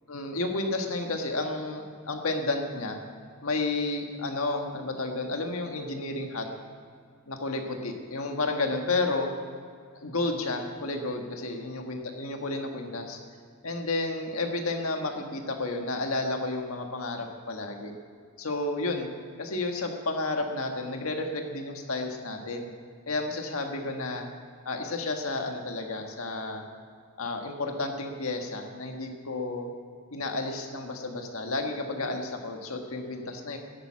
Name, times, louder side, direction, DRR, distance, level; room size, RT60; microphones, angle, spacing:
voice 1, 0.1-3.0 3.4-6.5 7.3-9.3 9.9-13.2 13.6-17.9 18.4-19.1 19.4-22.7 23.1-24.3 24.6-26.6 27.2-29.7 30.1-33.6, left 2 dB, 80° left, 3 dB, 1.6 m, -31 dB
14.0 x 9.1 x 8.5 m, 2.1 s
head